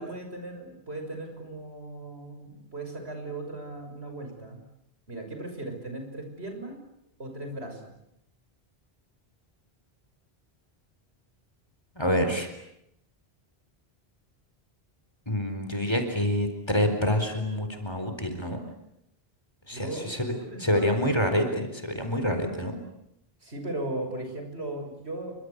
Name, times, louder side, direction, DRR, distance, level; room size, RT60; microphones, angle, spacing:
voice 1, 0.0-4.6 5.1-6.8 7.2-8.0 19.7-20.1 20.4-20.9 23.4-25.4, right 2 dB, 80° right, 4 dB, 6.7 m, -37 dB
voice 2, 12.0-12.5 15.3-18.6 19.7-20.3 20.6-22.8, equal, 25° left, 6 dB, 4.4 m, -27 dB
29.0 x 25.0 x 8.2 m, 0.79 s
omnidirectional pair, 1.1 m